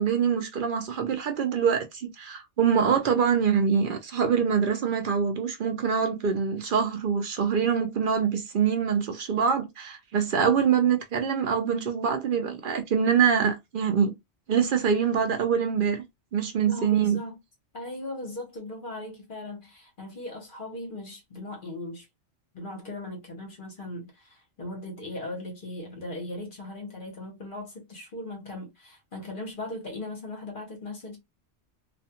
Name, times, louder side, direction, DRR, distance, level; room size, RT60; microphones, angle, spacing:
voice 1, 0.0-14.1 14.5-16.0 16.3-17.2, right 7 dB, 60° right, 0.6 m, -24 dB
voice 2, 16.6-17.4 17.7-22.1 22.5-31.2, left 1 dB, 50° left, 0.9 m, -38 dB
2.4 x 2.2 x 2.7 m
omnidirectional pair, 1.2 m